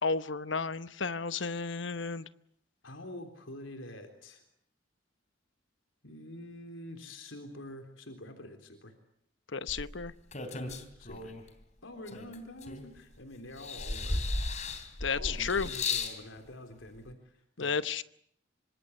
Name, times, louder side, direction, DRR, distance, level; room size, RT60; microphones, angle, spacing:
voice 1, 0.0-2.3 9.5-10.1 15.0-15.7 17.6-18.0, left 5 dB, 70° left, 13 dB, 1.0 m, -32 dB
voice 2, 2.8-4.4 6.0-8.9 10.5-11.3 11.8-14.2 15.1-17.7, left 1 dB, 90° left, 5 dB, 3.7 m, -46 dB
sound 1, 9.7-11.5 12.1-13.1 13.6-16.2 17.1-17.2, left 3 dB, 40° left, 3.1 m, -35 dB
26.5 x 25.5 x 8.1 m, 0.67 s
head